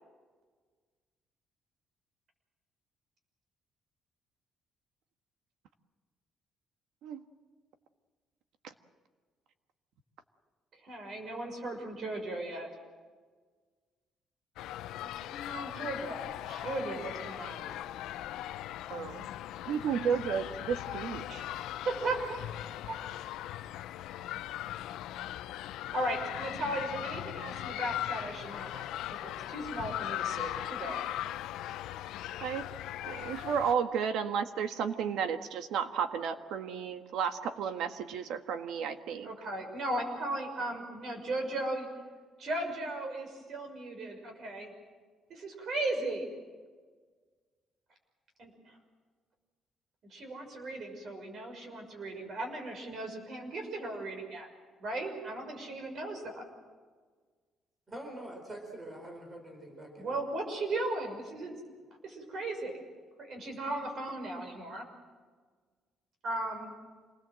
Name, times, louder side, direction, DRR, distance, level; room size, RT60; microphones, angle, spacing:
voice 1, 10.8-12.7 15.3-17.8 21.8-22.4 22.8-23.0 25.9-31.0 39.2-41.9 42.4-44.7 45.3-46.3 48.4-48.5 50.1-54.5 54.8-56.4 60.0-61.6 62.0-62.8 63.2-64.8 66.2-66.7, right 2 dB, 45° right, 4 dB, 6.1 m, -36 dB
sound 1, 14.6-33.7, left 13 dB, 90° left, 0.7 m, -39 dB
voice 2, 18.9-19.3 19.7-21.4 32.4-32.7 33.0-39.3, right 7 dB, 75° right, 8 dB, 1.6 m, -33 dB
voice 3, 57.9-60.2, right 1 dB, 20° right, 2 dB, 4.7 m, -45 dB
27.0 x 20.0 x 7.7 m, 1.5 s
cardioid pair, 165°, 0 cm